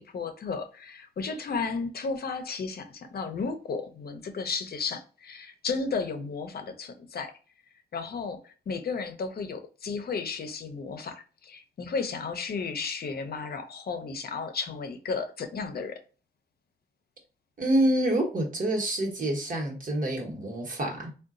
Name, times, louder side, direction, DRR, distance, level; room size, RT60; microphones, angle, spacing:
voice 1, 0.0-7.3 7.9-16.0, left 4 dB, 65° left, 0.6 m, -33 dB
voice 2, 17.6-21.1, right 1 dB, 50° right, 1.1 m, -27 dB
3.7 x 2.2 x 2.5 m
wide cardioid pair, 110°, 17 cm